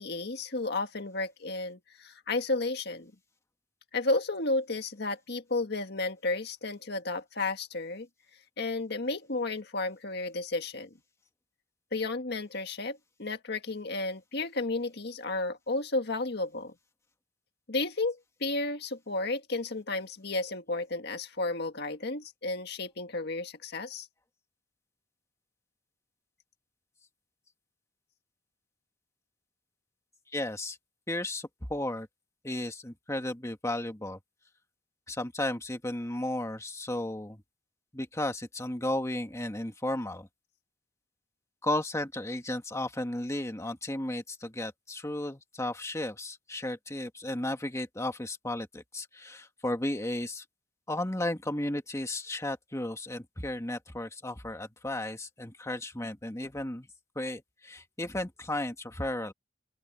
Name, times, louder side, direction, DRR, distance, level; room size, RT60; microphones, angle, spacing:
voice 1, 0.0-3.1 3.9-8.1 8.6-10.9 11.9-16.7 17.7-24.1, left 2 dB, 60° left, 1.8 m, -32 dB
voice 2, 30.3-30.8 31.1-32.1 32.4-34.2 35.1-37.4 37.9-40.3 41.6-50.4 50.9-56.9 57.1-59.3, left 1 dB, 15° left, 1.8 m, -34 dB
open air
head